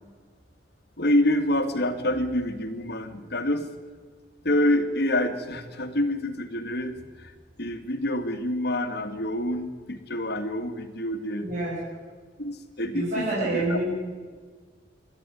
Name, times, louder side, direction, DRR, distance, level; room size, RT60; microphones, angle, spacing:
voice 1, 1.0-3.7 4.4-7.3 7.6-11.5 12.4-13.2 13.5-13.8, left 1 dB, 60° left, 7 dB, 2.1 m, -27 dB
voice 2, 11.4-11.8 12.9-13.9, right 1 dB, 50° right, -8 dB, 7.2 m, -27 dB
27.5 x 12.5 x 9.8 m, 1.5 s
head